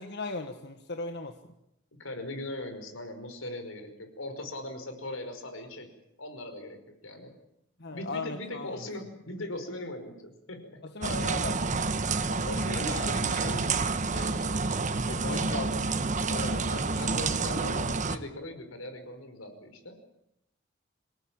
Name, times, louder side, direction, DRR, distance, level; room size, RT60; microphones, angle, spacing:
voice 1, 0.0-1.3 7.8-8.8 10.8-12.4 15.3-15.8 16.1-16.5 16.8-16.9 17.2-17.3, left 3 dB, 60° left, 6 dB, 1.6 m, -38 dB
voice 2, 2.0-5.9 6.2-6.8 7.0-7.3 7.9-10.8 11.2-11.8 12.4-13.8 14.1-20.0, left 1 dB, 90° left, 7 dB, 5.3 m, -40 dB
sound 1, 11.0-18.2, right 4 dB, 40° right, 1.3 m, -29 dB
27.0 x 18.0 x 8.9 m, 0.83 s
head